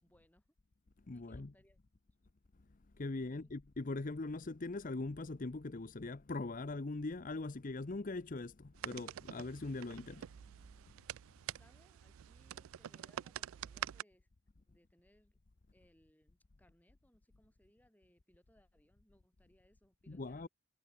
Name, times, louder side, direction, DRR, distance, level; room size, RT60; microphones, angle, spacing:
voice 1, 0.0-0.5 1.1-1.8 3.2-3.6 11.4-14.3 14.7-15.4 15.7-20.5, equal, 10° left, 6.2 m, -70 dB
voice 2, 1.1-1.5 3.0-10.3 20.1-20.5, left 2 dB, 40° left, 0.7 m, -41 dB
sound 1, 8.8-14.0, right 11 dB, 70° right, 0.3 m, -46 dB
head